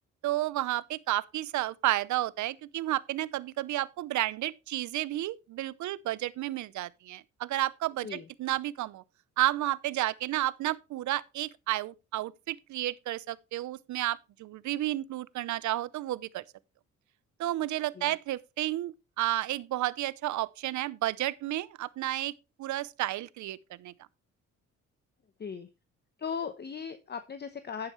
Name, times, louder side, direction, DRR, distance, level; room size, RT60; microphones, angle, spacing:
voice 1, 0.2-9.0 9.4-16.4 17.4-22.3 22.6-23.9, right 15 dB, 75° right, 0.7 m, -32 dB
voice 2, 26.2-27.9, left 6 dB, 35° left, 0.9 m, -37 dB
11.0 x 8.8 x 3.1 m
cardioid pair, 90°, 30 cm